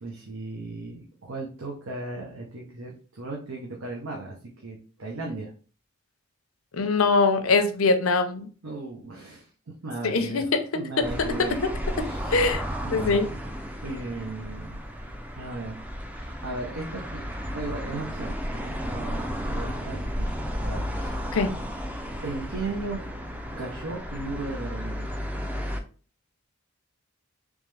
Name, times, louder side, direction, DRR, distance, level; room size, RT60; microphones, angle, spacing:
voice 1, 0.0-5.5 8.6-9.5 9.8-11.6 11.9-12.6 12.8-13.3 13.8-14.9 15.4-15.8 16.1-17.2 17.5-20.3 20.6-21.2 22.2-23.0 23.6-25.1, right 2 dB, 85° right, -1 dB, 0.8 m, -36 dB
voice 2, 6.7-8.5 10.0-10.4 12.3-12.6 12.9-13.3 21.3-21.5, left 3 dB, 90° left, 8 dB, 0.6 m, -22 dB
sound 1, 11.0-25.8, equal, 5° right, 0.4 m, -33 dB
3.6 x 3.2 x 3.2 m, 0.38 s
head